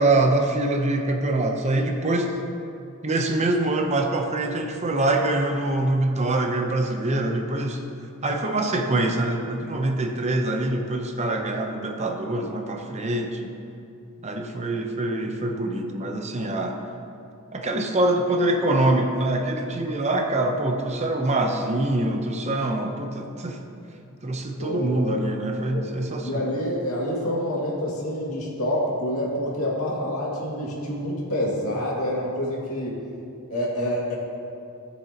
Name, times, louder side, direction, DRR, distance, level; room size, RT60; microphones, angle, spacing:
voice 1, 0.0-2.4 3.0-7.8 8.2-13.5 14.2-16.8 17.5-23.6 24.2-26.5, right 2 dB, 30° right, 3 dB, 0.7 m, -24 dB
voice 2, 24.6-25.3 25.6-25.9 26.2-33.0 33.5-34.2, left 1 dB, 75° left, -4 dB, 2.1 m, -27 dB
16.0 x 7.1 x 2.9 m, 2.6 s
head